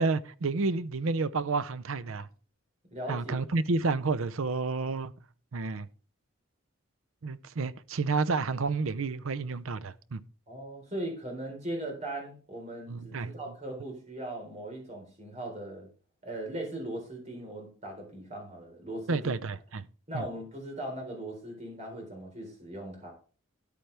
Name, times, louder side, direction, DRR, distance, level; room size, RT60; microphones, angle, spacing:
voice 1, 0.0-2.3 3.1-5.1 5.5-5.9 7.2-10.2 12.9-13.3 19.1-19.9 20.1-20.2, right 3 dB, 70° right, 0.6 m, -30 dB
voice 2, 2.9-3.4 10.5-15.9 16.2-19.3 20.1-23.1, right 1 dB, 30° right, 4.1 m, -39 dB
13.0 x 9.2 x 3.4 m
head